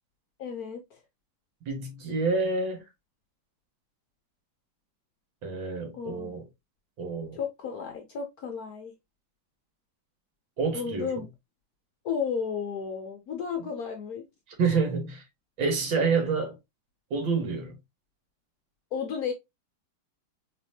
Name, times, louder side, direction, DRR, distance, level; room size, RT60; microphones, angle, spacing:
voice 1, 0.4-1.0 5.9-6.3 7.3-8.9 10.7-11.3 12.0-14.3 18.9-19.3, left 6 dB, 65° left, 0.9 m, -33 dB
voice 2, 1.7-2.9 5.4-6.4 7.0-7.4 10.6-11.1 14.6-15.2 15.6-16.6 17.1-17.8, right 4 dB, 70° right, 2.1 m, -28 dB
4.2 x 3.4 x 2.7 m
omnidirectional pair, 2.2 m